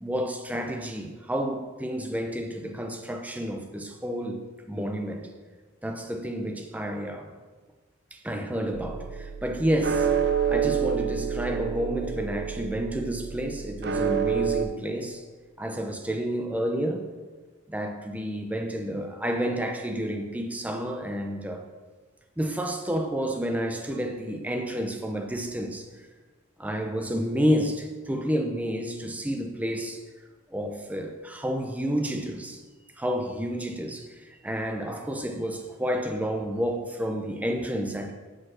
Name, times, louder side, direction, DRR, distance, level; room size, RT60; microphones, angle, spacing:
voice 1, 0.0-4.4 4.7-5.2 5.8-7.3 8.1-10.1 10.5-15.2 15.6-17.1 17.7-21.6 22.4-25.9 26.6-30.0 30.5-32.6 33.0-38.1, equal, 10° right, 3 dB, 0.6 m, -30 dB
sound 1, 8.7-14.7, right 7 dB, 55° right, 0.4 m, -28 dB
6.1 x 5.2 x 6.2 m, 1.4 s
head